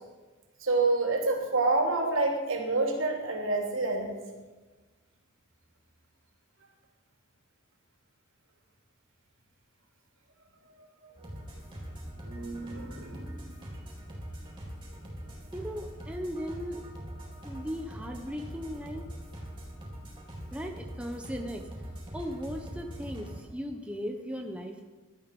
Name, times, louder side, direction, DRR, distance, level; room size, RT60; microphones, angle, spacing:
voice 1, 0.6-4.2 11.0-11.1 12.2-13.4, right 3 dB, 65° right, 2 dB, 3.2 m, -28 dB
sound 1, 11.2-23.4, equal, 20° right, 4.2 m, -43 dB
voice 2, 15.5-16.8 17.4-19.1 20.5-21.6 22.1-24.9, equal, 5° right, 3 dB, 0.9 m, -37 dB
18.0 x 12.5 x 5.4 m, 1.2 s
head